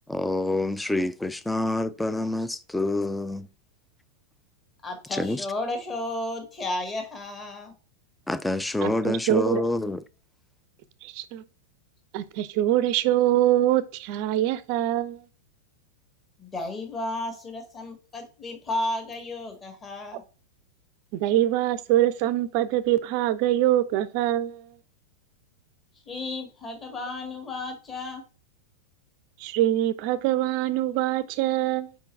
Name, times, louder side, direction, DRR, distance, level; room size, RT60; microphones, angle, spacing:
voice 1, 0.1-3.5 5.2-5.4 8.3-10.0, left 2 dB, 5° left, 0.4 m, -27 dB
voice 2, 4.8-7.7 16.4-20.2 26.0-28.2, left 2 dB, 20° left, 1.8 m, -33 dB
voice 3, 8.8-9.6 11.0-11.4 12.1-15.2 21.1-24.7 29.4-31.9, right 13 dB, 45° right, 0.5 m, -24 dB
5.1 x 4.5 x 4.5 m
figure-of-eight pair, 90°, 0 cm